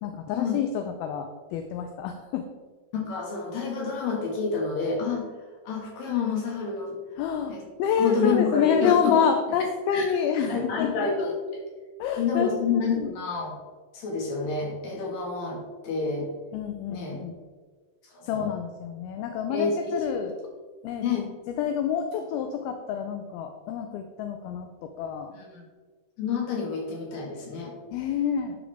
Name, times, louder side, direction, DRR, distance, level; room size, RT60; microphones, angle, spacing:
voice 1, 0.0-2.5 7.2-10.9 12.0-13.1 16.5-17.3 18.2-20.3 20.8-25.4 27.9-28.6, left 7 dB, 85° left, 5 dB, 2.5 m, -28 dB
voice 2, 2.9-5.3 5.6-7.0 7.5-7.6 8.0-9.3 9.9-10.1 10.5-11.3 12.2-13.6 13.9-16.3 16.9-17.2 18.0-18.5 19.5-20.2 21.0-21.3 25.4-25.6 26.2-27.7, left 5 dB, 70° left, -1 dB, 3.4 m, -28 dB
11.0 x 6.2 x 3.4 m, 1.4 s
omnidirectional pair, 4.3 m